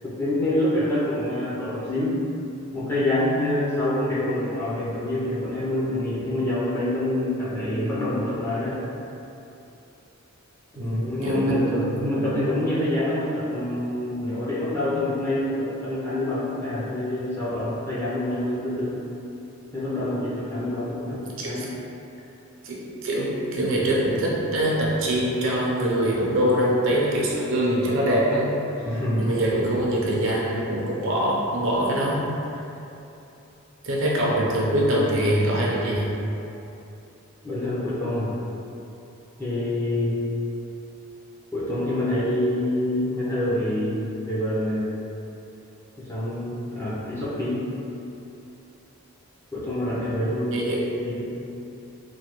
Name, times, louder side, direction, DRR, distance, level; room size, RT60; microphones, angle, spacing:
voice 1, 0.2-2.2 2.7-8.8 10.8-19.0 19.7-21.2 21.4-21.7 28.8-29.3 37.4-38.3 39.4-40.2 41.5-44.9 46.0-47.6 49.5-50.7 51.0-51.2, left 1 dB, 10° left, -10 dB, 0.5 m, -26 dB
voice 2, 10.8-12.1 21.0-21.6 22.6-28.5 28.9-32.2 33.8-36.1 50.5-50.8, right 1 dB, 60° right, -4 dB, 0.5 m, -24 dB
3.2 x 2.2 x 2.9 m, 2.8 s
head